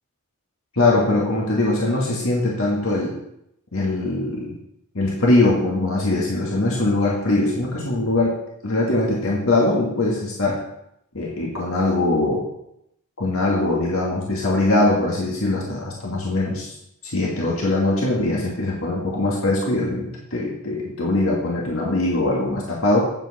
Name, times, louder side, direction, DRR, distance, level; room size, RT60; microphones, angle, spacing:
voice 1, 0.7-3.1 3.7-4.6 4.9-8.3 8.6-10.6 11.1-12.4 13.2-16.7 17.0-23.0, left 2 dB, 70° left, -4 dB, 2.0 m, -21 dB
8.9 x 7.4 x 4.2 m, 0.77 s
head